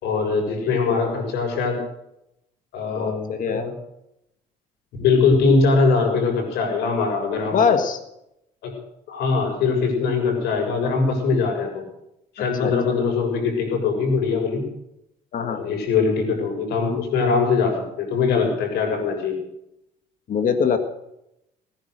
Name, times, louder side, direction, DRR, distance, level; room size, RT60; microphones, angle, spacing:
voice 1, 0.0-1.8 2.7-3.7 4.9-7.6 8.6-8.7 9.1-11.8 12.4-14.6 15.4-19.4, left 4 dB, 80° left, 2 dB, 6.9 m, -22 dB
voice 2, 0.6-1.2 2.9-3.7 7.5-8.0 12.4-12.7 15.3-15.6 20.3-20.8, left 6 dB, 50° left, 8 dB, 1.7 m, -23 dB
19.0 x 10.5 x 6.6 m, 0.83 s
cardioid pair, 110°, 17 cm